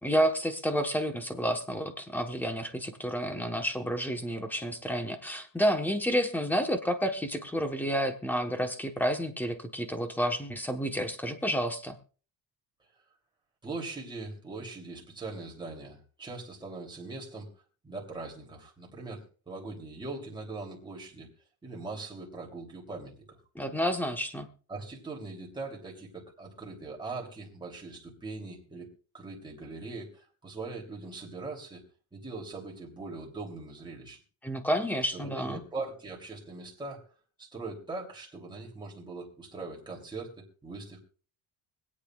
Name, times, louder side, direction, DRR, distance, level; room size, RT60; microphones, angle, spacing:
voice 1, 0.0-12.0 23.5-24.5 34.4-35.6, equal, 5° left, 6 dB, 1.2 m, -30 dB
voice 2, 13.6-17.5 17.8-21.3 21.6-23.4 24.7-28.9 29.1-31.8 32.1-34.2 35.1-37.0 37.4-41.0, right 3 dB, 10° right, -2 dB, 3.1 m, -41 dB
24.5 x 8.5 x 2.4 m, 0.38 s
cardioid pair, 150°, 42 cm